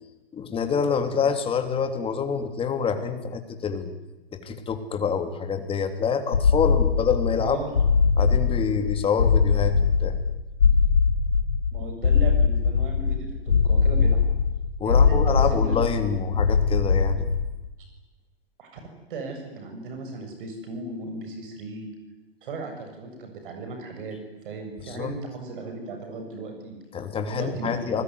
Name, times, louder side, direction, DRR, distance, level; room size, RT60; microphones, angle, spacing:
voice 1, 0.3-3.9 4.3-7.6 8.2-10.2 14.8-17.3 24.8-25.1 26.9-28.0, left 6 dB, 15° left, 7 dB, 3.2 m, -26 dB
sound 1, 6.3-17.7, left 5 dB, 80° left, 2.6 m, -21 dB
voice 2, 7.4-7.7 11.7-14.2 14.8-15.8 18.6-21.9 22.4-24.2 24.4-26.8 27.3-28.0, right 3 dB, 55° right, 4 dB, 7.4 m, -36 dB
29.5 x 20.5 x 9.8 m, 1.1 s
figure-of-eight pair, 115°, 31 cm